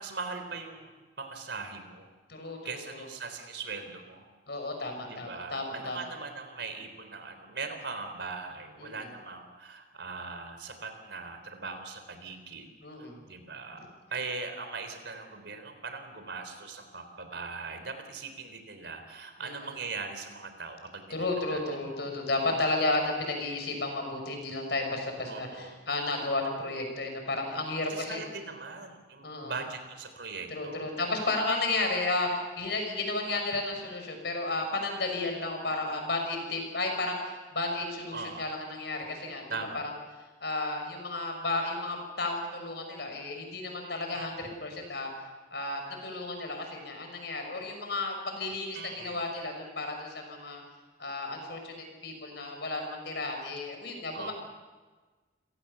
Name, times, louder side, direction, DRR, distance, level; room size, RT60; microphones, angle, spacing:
voice 1, 0.0-2.1 2.6-4.2 5.1-12.7 13.3-13.8 14.1-22.1 25.3-25.8 27.9-30.9 38.1-38.5 39.5-39.8 44.1-44.4 48.7-49.3 54.1-54.3, right 4 dB, 70° right, 7 dB, 3.8 m, -40 dB
voice 2, 4.5-6.0 8.8-9.1 12.8-13.2 13.7-13.8 19.4-19.7 21.1-28.2 29.2-29.5 30.5-39.8 40.4-45.1 45.5-50.6 51.0-54.3, left 2 dB, 65° left, 3 dB, 6.3 m, -33 dB
28.5 x 18.0 x 7.0 m, 1.3 s
head